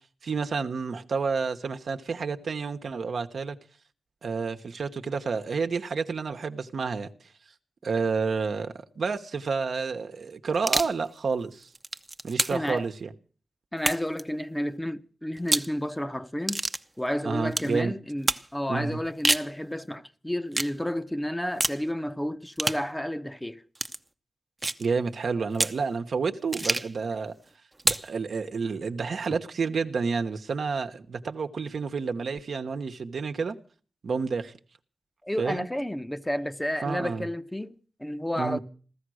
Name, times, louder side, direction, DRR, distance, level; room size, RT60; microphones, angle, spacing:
voice 1, 0.2-3.6 4.2-7.1 7.8-11.7 12.2-13.1 17.2-17.9 18.7-19.0 24.8-27.3 27.8-33.5 34.0-34.5 35.4-35.7 36.8-37.3 38.4-38.6, right 5 dB, 75° right, 1.1 m, -30 dB
sound 1, 10.5-11.0 11.6-12.7 13.8-14.2 15.4-15.7 16.5-16.8 17.5-17.7 18.3-18.5 19.0-19.5 20.5-20.7 21.6-21.8 22.6-22.8 23.7-24.0 24.6-24.9 25.5-25.8 26.5-27.0 27.8-28.1, right 2 dB, 25° right, 0.8 m, -27 dB
voice 2, 12.5-12.9 13.7-16.6 17.0-23.6 29.3-29.4 35.2-38.6, equal, 10° left, 0.9 m, -31 dB
15.5 x 13.5 x 6.3 m
cardioid pair, 70°, 0 cm